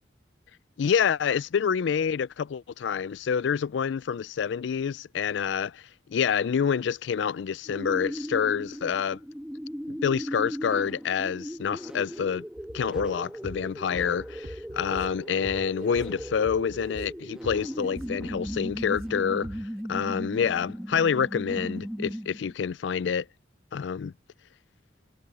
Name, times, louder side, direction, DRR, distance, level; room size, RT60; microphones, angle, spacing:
voice 1, 0.8-5.8 6.1-9.2 9.9-12.4 12.7-19.5 19.9-23.3 23.7-24.1, left 7 dB, 80° left, 0.4 m, -27 dB
sound 1, 7.6-22.5, equal, 5° right, 1.4 m, -37 dB
sound 2, 12.6-19.8, equal, 50° right, 3.5 m, -45 dB
head